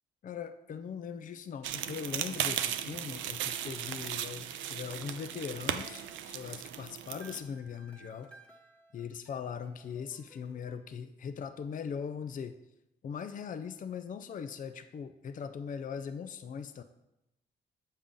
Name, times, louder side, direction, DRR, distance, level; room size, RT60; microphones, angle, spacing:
voice 1, 0.2-8.3 8.9-12.5 13.0-16.8, left 7 dB, 45° left, 10 dB, 0.5 m, -40 dB
sound 1, 1.6-7.4, right 10 dB, 90° right, 0.5 m, -36 dB
sound 2, 5.1-10.8, right 1 dB, 5° left, 1.2 m, -59 dB
7.2 x 5.3 x 3.7 m, 0.91 s
cardioid pair, 70°, 19 cm